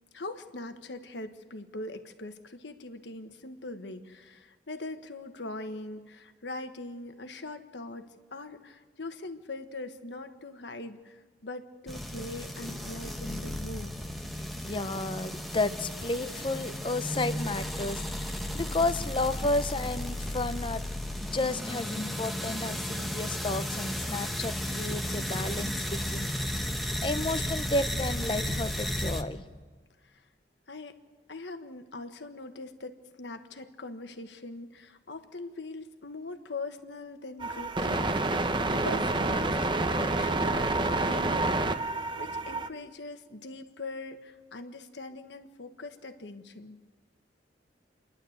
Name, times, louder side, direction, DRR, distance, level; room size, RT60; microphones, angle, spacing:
voice 1, 0.1-13.9 30.0-30.2 30.7-31.0 31.3-46.8, left 2 dB, 80° left, 8 dB, 1.4 m, -42 dB
sound 1, 11.9-29.2, left 1 dB, ahead, 1.0 m, -34 dB
voice 2, 14.4-20.8 21.2-26.3 27.0-29.4, left 2 dB, 30° left, 11 dB, 0.8 m, -32 dB
sound 2, 37.4-42.7, right 2 dB, 25° right, 0.8 m, -28 dB
29.0 x 11.5 x 8.0 m, 1.4 s
head